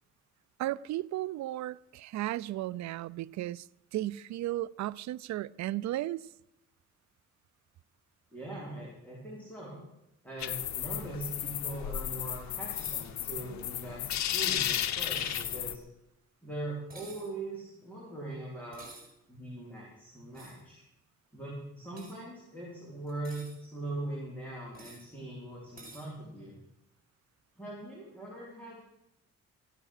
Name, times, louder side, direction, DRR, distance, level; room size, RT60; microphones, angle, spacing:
voice 1, 0.6-3.7 3.9-6.2, right 15 dB, 65° right, 0.5 m, -34 dB
voice 2, 8.3-9.8 10.2-15.8 16.4-18.9 19.3-20.8 21.3-26.6 27.5-28.8, right 2 dB, 5° left, 4.5 m, -41 dB
sound 1, 10.4-15.8, left 11 dB, 65° left, 0.9 m, -34 dB
sound 2, 12.7-13.1 15.1-15.6 16.9-17.3 18.7-19.1 20.3-20.6 22.0-22.2 23.1-23.6 24.7-25.1 25.8-26.1, right 3 dB, 30° right, 5.2 m, -50 dB
15.0 x 8.9 x 6.5 m
cardioid pair, 90°, 30 cm